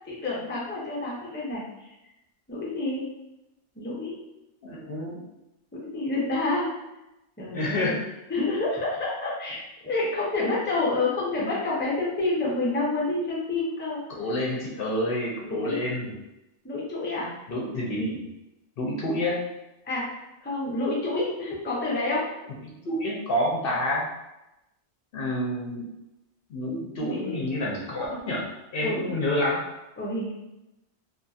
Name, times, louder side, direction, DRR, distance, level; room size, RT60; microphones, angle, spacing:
voice 1, 0.1-1.6 2.5-3.1 3.8-4.1 5.7-6.7 7.4-8.0 8.3-14.0 15.4-15.9 16.6-17.3 19.8-20.1 20.4-22.3 27.0-27.4 28.8-29.1 30.0-30.3, left 2 dB, 15° left, -6 dB, 0.5 m, -28 dB
voice 2, 4.6-5.2 7.5-8.0 14.1-16.2 17.5-18.2 18.8-19.4 22.6-24.1 25.1-25.9 26.5-28.5 28.7-29.6, left 1 dB, 60° left, -3 dB, 0.7 m, -28 dB
2.7 x 2.7 x 2.3 m, 0.94 s
omnidirectional pair, 1.2 m